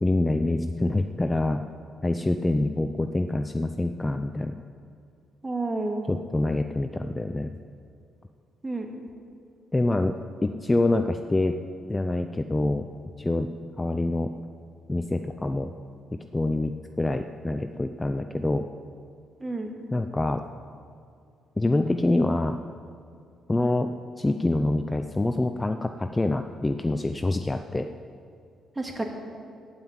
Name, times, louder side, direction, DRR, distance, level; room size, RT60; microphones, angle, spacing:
voice 1, 0.0-1.6 2.0-4.6 6.1-7.5 9.7-10.1 10.4-11.6 11.9-12.9 13.2-13.5 13.8-14.3 14.9-15.7 16.3-18.7 19.9-20.4 21.6-22.6 23.5-23.9 24.2-27.9, left 2 dB, 15° left, 7 dB, 0.5 m, -26 dB
voice 2, 5.4-6.0 8.6-8.9 19.4-19.7 28.8-29.0, right 2 dB, 20° right, 3 dB, 2.1 m, -29 dB
16.0 x 5.7 x 8.9 m, 2.4 s
cardioid pair, 90°, 0 cm